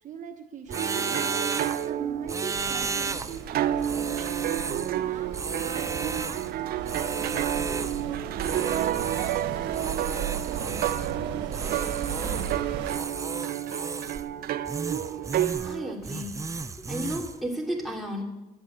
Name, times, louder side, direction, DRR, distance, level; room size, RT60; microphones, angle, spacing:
voice 1, 0.0-1.5 1.9-6.5 6.8-10.8 11.2-11.8, right 7 dB, 45° right, 5 dB, 1.0 m, -41 dB
sound 1, 0.7-1.9 2.3-3.4 3.8-5.0 5.3-6.5 6.8-8.1 8.4-9.5 9.7-11.1 11.5-12.6 12.9-14.3 14.7-15.8 16.0-17.4, right 4 dB, 20° right, 0.5 m, -34 dB
sound 2, 0.7-15.9, right 12 dB, 60° right, 0.6 m, -30 dB
sound 3, 2.5-13.0, right 8 dB, 85° right, 1.4 m, -37 dB
voice 2, 15.5-16.3 16.6-18.2, equal, ahead, -2 dB, 3.0 m, -33 dB
11.5 x 8.8 x 9.1 m, 0.98 s
cardioid pair, 110°, 17 cm